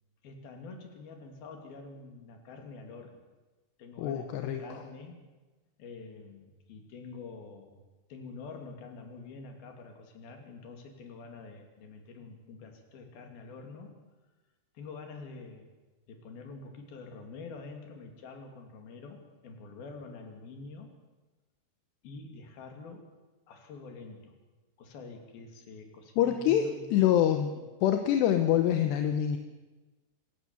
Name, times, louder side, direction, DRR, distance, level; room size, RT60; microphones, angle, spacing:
voice 1, 0.2-3.2 3.8-5.2 5.8-7.8 8.1-14.0 14.7-15.7 16.1-20.9 22.0-23.1 23.5-24.4 24.8-27.1, left 4 dB, 60° left, 4 dB, 4.4 m, -46 dB
voice 2, 4.0-4.6 26.2-27.5 27.8-29.4, left 10 dB, 80° left, 7 dB, 3.2 m, -25 dB
27.0 x 15.0 x 7.1 m, 1.2 s
omnidirectional pair, 4.9 m